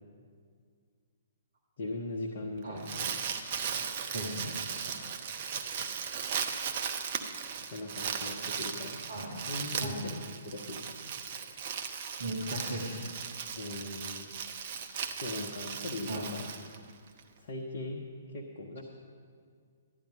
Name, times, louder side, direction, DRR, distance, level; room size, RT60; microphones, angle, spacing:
voice 1, 1.8-3.2 7.7-9.0 9.5-11.1 13.6-14.3 15.2-16.5 17.4-18.8, left 2 dB, 45° left, 0 dB, 1.0 m, -39 dB
Crumpling crinkling, 2.6-17.2, right 7 dB, 40° right, 0.7 m, -37 dB
voice 2, 4.1-4.8 9.1-9.3 9.8-10.1 12.2-13.1 16.1-16.2, right 1 dB, 60° right, -2 dB, 1.5 m, -37 dB
12.5 x 10.5 x 5.2 m, 2.1 s
figure-of-eight pair, 125°, 0 cm